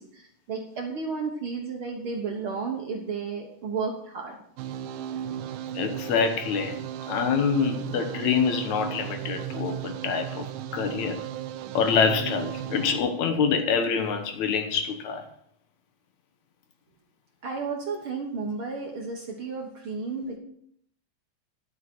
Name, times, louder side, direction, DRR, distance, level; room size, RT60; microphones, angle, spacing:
voice 1, 0.0-4.4 17.4-20.4, right 5 dB, 55° right, 1 dB, 1.7 m, -33 dB
sound 1, 4.6-13.0, right 11 dB, 85° right, 2.2 m, -35 dB
voice 2, 5.7-10.5 10.7-11.2 11.7-15.3 20.2-20.3, left 6 dB, 70° left, 6 dB, 2.3 m, -26 dB
11.0 x 8.1 x 4.5 m, 0.68 s
omnidirectional pair, 3.6 m